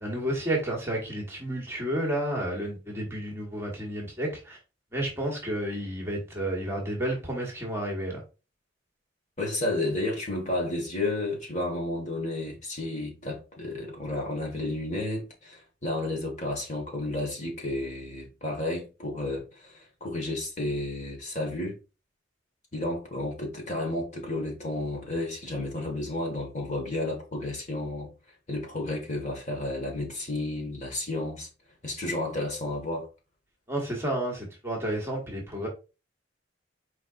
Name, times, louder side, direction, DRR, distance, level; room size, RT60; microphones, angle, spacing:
voice 1, 0.0-4.6 4.9-8.2 33.7-35.7, right 1 dB, 15° right, 1.4 m, -31 dB
voice 2, 9.4-21.7 22.7-28.1 28.5-31.5 31.8-33.1, left 2 dB, 40° left, 1.6 m, -32 dB
4.6 x 4.2 x 2.5 m
head